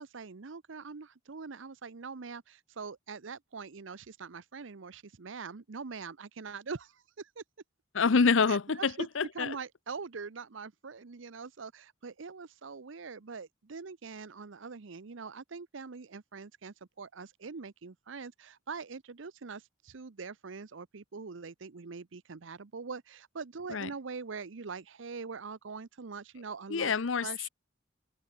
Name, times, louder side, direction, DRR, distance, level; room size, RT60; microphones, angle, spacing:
voice 1, 0.0-7.4 8.5-9.1 9.3-26.9 27.2-27.5, right 5 dB, 75° right, 0.7 m, -43 dB
voice 2, 7.9-9.6 23.7-23.9 26.7-27.5, left 5 dB, 75° left, 0.7 m, -27 dB
head